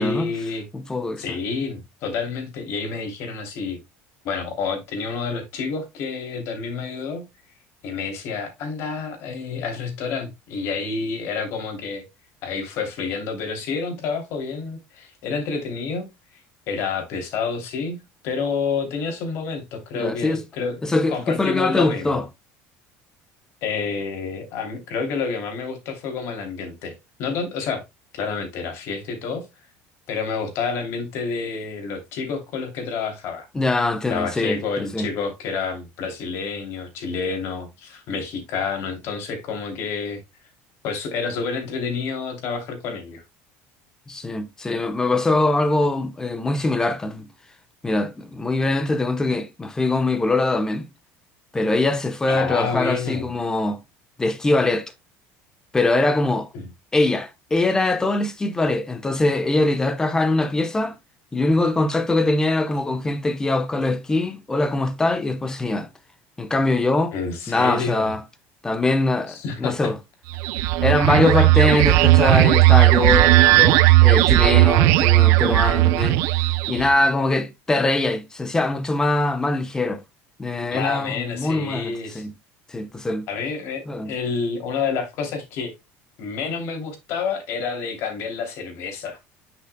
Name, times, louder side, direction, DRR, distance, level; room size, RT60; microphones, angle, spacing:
voice 1, 0.0-0.6 1.2-3.8 4.2-7.3 7.8-12.0 12.4-16.1 16.7-20.8 21.1-22.2 23.6-27.8 28.1-29.4 30.1-33.5 34.1-40.2 40.8-43.2 52.3-53.3 56.5-56.7 67.1-68.1 69.3-69.9 80.7-82.3 83.3-85.7 86.2-89.2, left 5 dB, 55° left, 3.0 m, -29 dB
voice 2, 0.7-1.2 19.9-20.4 20.8-22.2 33.5-35.1 44.1-47.3 47.8-50.9 51.5-53.8 54.2-54.9 55.7-56.5 56.9-61.0 61.3-65.9 66.4-67.1 67.5-68.2 68.6-70.0 70.8-76.2 76.7-80.0 80.4-82.3 82.7-83.2 83.9-84.1, left 2 dB, 10° left, 0.9 m, -22 dB
sound 1, 70.3-76.9, right 18 dB, 70° right, 0.5 m, -16 dB
9.9 x 5.9 x 2.2 m
cardioid pair, 155°, 5 cm